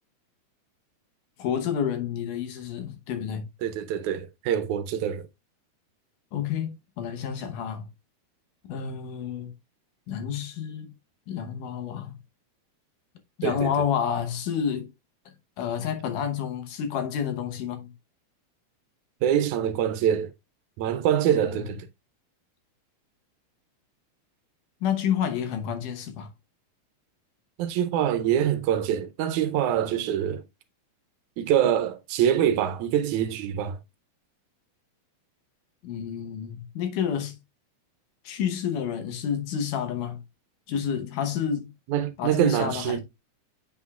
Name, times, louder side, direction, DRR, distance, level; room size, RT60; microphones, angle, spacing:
voice 1, 1.4-3.5 6.3-7.8 8.7-9.5 10.1-10.9 11.3-12.2 13.4-14.9 15.6-17.9 21.3-21.7 24.8-26.3 35.8-37.4 38.2-40.2 40.7-41.7 42.2-43.0, left 8 dB, 85° left, 2.6 m, -29 dB
voice 2, 3.6-5.3 13.4-13.7 19.2-20.3 20.8-21.9 27.6-30.4 31.4-33.8 41.9-43.0, right 10 dB, 75° right, 2.0 m, -25 dB
7.9 x 5.9 x 2.3 m
omnidirectional pair, 3.5 m